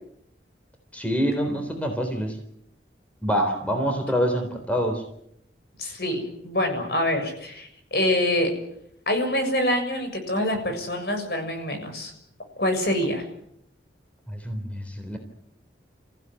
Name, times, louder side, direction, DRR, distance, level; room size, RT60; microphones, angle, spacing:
voice 1, 0.9-2.4 3.2-5.0 14.3-15.2, equal, 10° left, 4 dB, 3.7 m, -26 dB
voice 2, 5.8-8.5 9.1-12.1 12.6-13.2, left 1 dB, 60° left, 5 dB, 7.0 m, -25 dB
29.5 x 16.0 x 9.7 m, 0.75 s
head